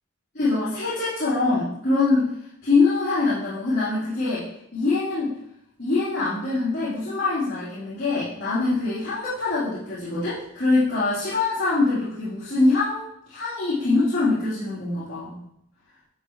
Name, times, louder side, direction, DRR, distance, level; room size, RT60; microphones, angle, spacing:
voice 1, 0.3-2.3 2.6-4.5 4.7-5.4 5.8-15.4, left 3 dB, 50° left, -13 dB, 4.0 m, -24 dB
12.5 x 7.3 x 3.3 m, 0.76 s
head